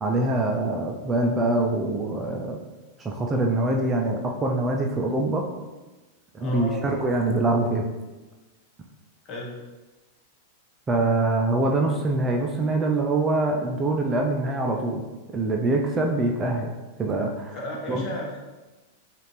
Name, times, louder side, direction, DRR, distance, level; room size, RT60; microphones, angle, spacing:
voice 1, 0.0-2.6 3.0-5.5 6.3-7.9 10.9-15.0 15.3-16.7 17.0-17.6 17.9-18.0, right 2 dB, 20° right, 1 dB, 0.4 m, -24 dB
voice 2, 6.4-6.8 9.2-9.6 17.5-18.4, left 1 dB, 40° left, -2 dB, 1.1 m, -33 dB
5.0 x 2.5 x 3.1 m, 1.1 s
figure-of-eight pair, 95°, 0 cm